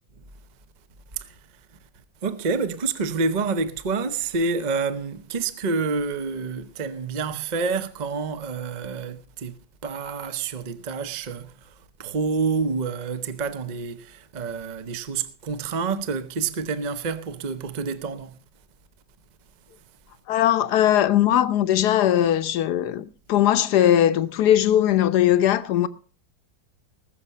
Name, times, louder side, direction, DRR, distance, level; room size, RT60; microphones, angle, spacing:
voice 1, 2.2-9.6 9.8-11.7 12.0-18.4, right 4 dB, 35° right, 0.7 m, -28 dB
voice 2, 20.3-25.9, left 11 dB, 65° left, 1.2 m, -20 dB
20.0 x 6.9 x 5.4 m
omnidirectional pair, 2.1 m